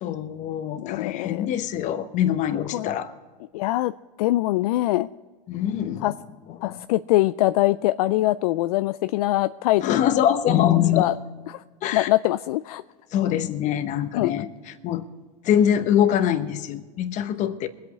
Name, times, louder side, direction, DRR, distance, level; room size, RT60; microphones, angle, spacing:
voice 1, 0.0-3.1 5.5-6.1 6.5-6.8 9.8-11.2 11.8-12.1 13.1-15.0 15.4-17.7, left 10 dB, 35° left, 11 dB, 1.0 m, -24 dB
voice 2, 0.8-1.5 2.7-2.9 3.5-3.9 4.2-5.1 6.0-6.1 6.6-10.0 10.8-11.1 11.9-12.8 14.1-14.3, left 17 dB, 65° left, 13 dB, 0.4 m, -23 dB
22.5 x 8.4 x 4.7 m, 1.5 s
supercardioid pair, 130°, 21 cm